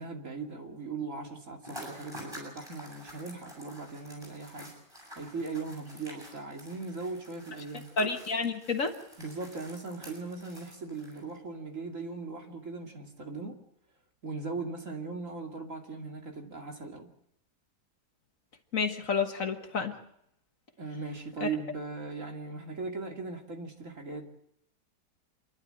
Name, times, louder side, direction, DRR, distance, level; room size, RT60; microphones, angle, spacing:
voice 1, 0.0-4.7 5.2-7.9 9.2-13.6 14.2-17.1 20.8-24.2, right 4 dB, 45° right, 2.9 m, -39 dB
sound 1, 1.6-11.4, equal, 15° right, 7.8 m, -48 dB
voice 2, 8.0-8.9 18.7-20.0 21.4-21.5, left 4 dB, 50° left, 1.7 m, -29 dB
27.5 x 11.5 x 8.9 m
omnidirectional pair, 1.8 m